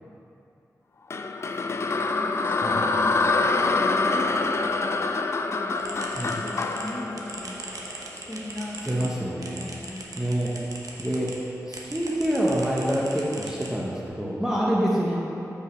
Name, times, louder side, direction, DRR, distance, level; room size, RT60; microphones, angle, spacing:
sound 1, 1.1-8.3, left 3 dB, 45° left, 0.4 m, -26 dB
voice 1, 1.5-4.9 5.4-7.6 8.1-10.1, left 1 dB, 25° left, -4 dB, 1.3 m, -39 dB
sound 2, 5.8-11.4 11.7-14.1, right 2 dB, 70° right, 0.9 m, -40 dB
voice 2, 8.9-9.7 10.2-10.5 11.0-11.3 11.7-15.2, equal, 10° right, -5 dB, 0.9 m, -26 dB
5.6 x 5.1 x 6.1 m, 2.7 s
wide cardioid pair, 90°, 6 cm